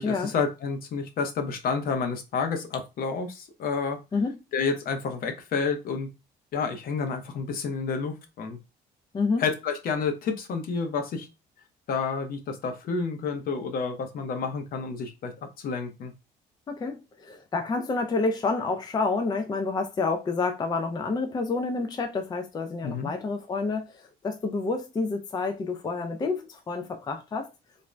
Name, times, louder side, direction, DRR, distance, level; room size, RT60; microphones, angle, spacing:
voice 1, 0.0-4.0 4.5-6.1 6.5-8.6 9.4-11.3 11.9-15.3 15.6-16.1 22.8-23.1, left 5 dB, 60° left, 0.7 m, -29 dB
voice 2, 16.7-23.9 24.2-27.5, left 3 dB, 25° left, 0.4 m, -28 dB
2.5 x 2.1 x 3.1 m
cardioid pair, 110°, 17 cm